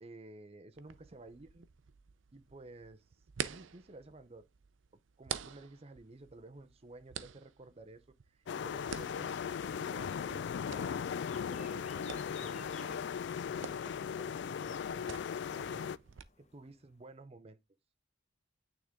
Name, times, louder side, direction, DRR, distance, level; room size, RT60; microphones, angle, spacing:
voice 1, 0.0-1.7 2.3-3.1 3.4-4.5 5.2-11.1 11.4-13.0 13.5-15.9 16.4-17.6, right 2 dB, 30° right, 0.6 m, -53 dB
sound 1, 0.7-16.2, right 7 dB, 75° right, 0.5 m, -48 dB
sound 2, 8.5-16.0, left 7 dB, 60° left, 0.3 m, -38 dB
sound 3, 9.6-17.2, left 6 dB, 35° left, 1.1 m, -59 dB
9.1 x 3.8 x 3.5 m
head